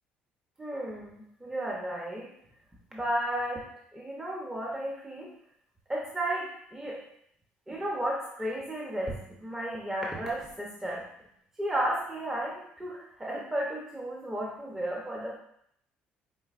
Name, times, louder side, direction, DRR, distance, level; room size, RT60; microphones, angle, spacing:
voice 1, 0.6-2.3 2.9-3.7 3.9-5.3 5.9-7.0 7.7-9.2 9.4-11.1 11.6-15.4, right 1 dB, 15° right, -3 dB, 0.7 m, -33 dB
5.1 x 2.9 x 2.4 m, 0.71 s
supercardioid pair, 85°, 4 cm